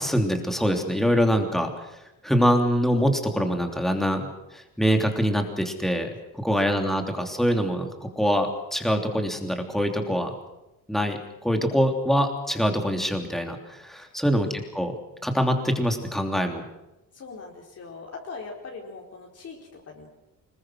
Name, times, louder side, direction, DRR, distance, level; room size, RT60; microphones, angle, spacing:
voice 1, 0.0-1.9 2.2-10.3 10.9-14.5 14.7-14.9 15.2-16.6, equal, ahead, 4 dB, 3.1 m, -24 dB
voice 2, 14.1-14.7 17.1-20.1, left 4 dB, 40° left, 0 dB, 4.3 m, -41 dB
25.5 x 21.5 x 6.2 m, 0.96 s
cardioid pair, 160°, 36 cm